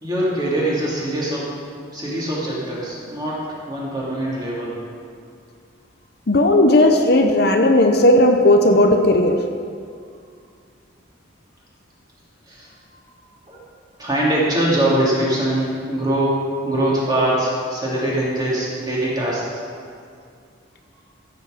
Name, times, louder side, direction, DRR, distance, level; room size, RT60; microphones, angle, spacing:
voice 1, 0.0-1.5 1.9-4.7 12.5-12.7 13.5-13.6 14.0-19.6, right 1 dB, 20° right, -7 dB, 3.0 m, -22 dB
voice 2, 6.3-9.4, left 1 dB, 50° left, 4 dB, 0.7 m, -15 dB
15.0 x 7.9 x 5.1 m, 2.3 s
head